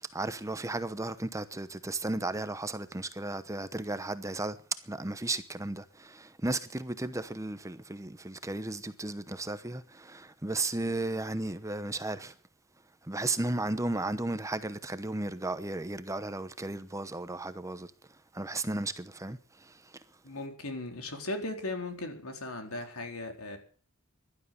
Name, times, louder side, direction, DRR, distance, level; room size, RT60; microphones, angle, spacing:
voice 1, 0.0-4.6 4.8-12.3 13.0-17.9 18.3-19.8, right 2 dB, 15° right, 0.9 m, -34 dB
voice 2, 20.2-23.6, left 2 dB, 75° left, 4.2 m, -37 dB
16.5 x 12.0 x 7.1 m
head